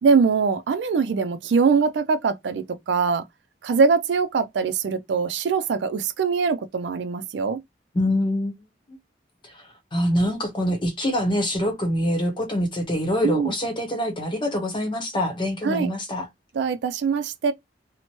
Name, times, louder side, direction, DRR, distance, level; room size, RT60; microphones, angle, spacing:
voice 1, 0.0-3.2 3.6-7.6 13.2-13.5 15.6-15.9 16.5-17.5, right 5 dB, 75° right, 0.4 m, -22 dB
voice 2, 7.9-8.5 8.9-9.0 9.4-16.3, left 1 dB, 30° left, 0.8 m, -25 dB
2.8 x 2.1 x 3.0 m
head